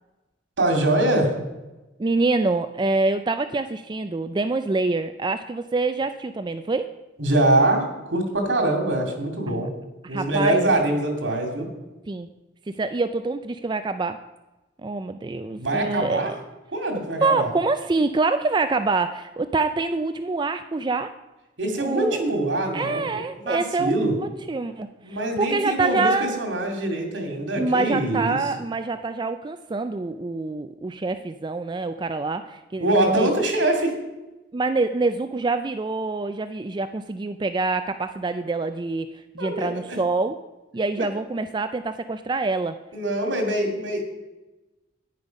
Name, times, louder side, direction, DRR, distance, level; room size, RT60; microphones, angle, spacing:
voice 1, 0.6-1.3 7.2-9.7 10.1-11.7 15.6-16.3 16.7-17.5 21.6-24.2 25.0-28.4 32.8-34.0 39.4-40.0 41.0-41.1 42.9-44.2, right 1 dB, 85° right, 3 dB, 2.5 m, -24 dB
voice 2, 2.0-6.9 9.5-9.7 10.0-10.7 12.1-12.3 12.7-14.2 14.8-16.4 17.2-21.1 21.8-22.2 22.7-26.4 27.6-33.3 34.5-40.3 40.7-42.8, right 3 dB, 25° right, 10 dB, 0.4 m, -26 dB
10.5 x 9.9 x 5.3 m, 1.1 s
head